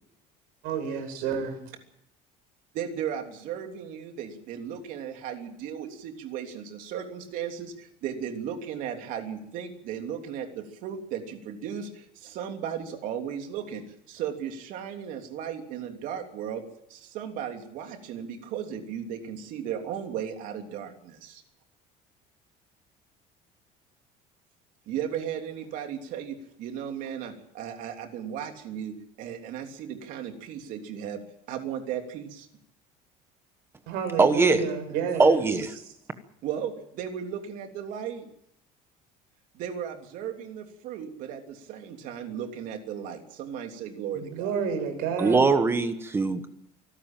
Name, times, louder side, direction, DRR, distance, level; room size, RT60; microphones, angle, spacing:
voice 1, 0.6-1.6 33.9-35.5 44.1-45.4, right 6 dB, 85° right, 6.3 m, -30 dB
voice 2, 2.7-16.6 16.9-21.4 24.9-31.2 31.5-32.5 36.4-38.3 39.5-44.5, right 8 dB, 60° right, 3.2 m, -36 dB
voice 3, 34.2-34.6 35.2-35.7 45.2-46.5, right 4 dB, 15° right, 1.2 m, -21 dB
25.0 x 12.5 x 9.0 m
cardioid pair, 170°, 15 cm